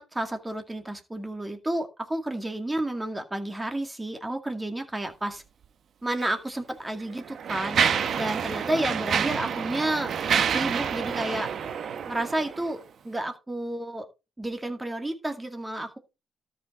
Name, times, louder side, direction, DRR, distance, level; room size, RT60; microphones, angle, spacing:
voice 1, 0.0-5.4 6.0-7.8 8.1-10.2 10.5-11.5 12.1-14.1 14.4-16.0, right 1 dB, 15° right, 6 dB, 2.1 m, -31 dB
Mechanisms, 6.1-6.3 7.0-12.7, right 7 dB, 60° right, 1.0 m, -28 dB
13.0 x 5.5 x 4.3 m, 0.28 s
cardioid pair, 90°, 0 cm